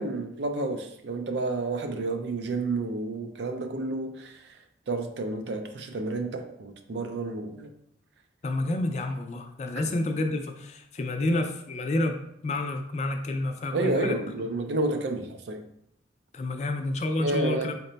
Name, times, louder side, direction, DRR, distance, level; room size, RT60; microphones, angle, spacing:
voice 1, 0.0-4.4 4.9-7.7 9.8-9.9 13.7-15.6 17.2-17.7, right 2 dB, 65° right, 6 dB, 0.4 m, -30 dB
voice 2, 8.4-14.1 16.3-17.7, left 2 dB, 35° left, 6 dB, 0.3 m, -29 dB
4.0 x 2.2 x 3.9 m, 0.77 s
head